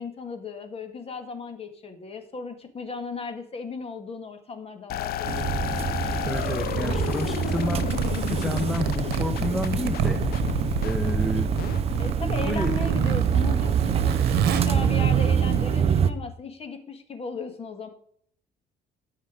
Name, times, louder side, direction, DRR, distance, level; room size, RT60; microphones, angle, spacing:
voice 1, 0.0-5.7 12.0-17.9, left 4 dB, 35° left, 7 dB, 1.9 m, -36 dB
sound 1, 4.9-13.4, left 11 dB, 65° left, 0.6 m, -32 dB
sound 2, 5.2-16.1, right 8 dB, 35° right, 0.6 m, -26 dB
voice 2, 6.2-7.9 8.3-8.8 9.2-10.4 10.8-11.6 12.4-12.7, equal, ahead, 6 dB, 0.9 m, -30 dB
Zipper (clothing), 7.8-15.8, right 8 dB, 70° right, 1.1 m, -29 dB
12.5 x 5.7 x 5.0 m, 0.62 s
cardioid pair, 110°, 17 cm